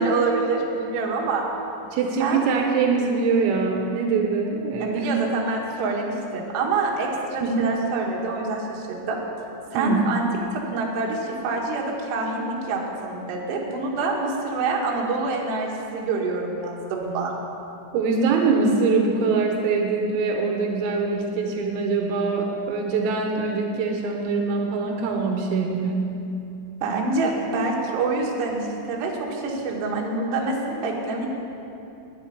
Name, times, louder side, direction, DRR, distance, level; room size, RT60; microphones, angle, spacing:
voice 1, 0.0-1.5 2.2-2.4 4.8-9.2 9.7-10.2 10.5-17.3 26.8-31.3, right 3 dB, 65° right, -2 dB, 3.3 m, -26 dB
voice 2, 1.9-5.1 7.4-7.7 9.8-10.1 17.9-26.1, right 4 dB, 85° right, 2 dB, 3.6 m, -23 dB
10.5 x 7.7 x 9.4 m, 2.8 s
omnidirectional pair, 5.9 m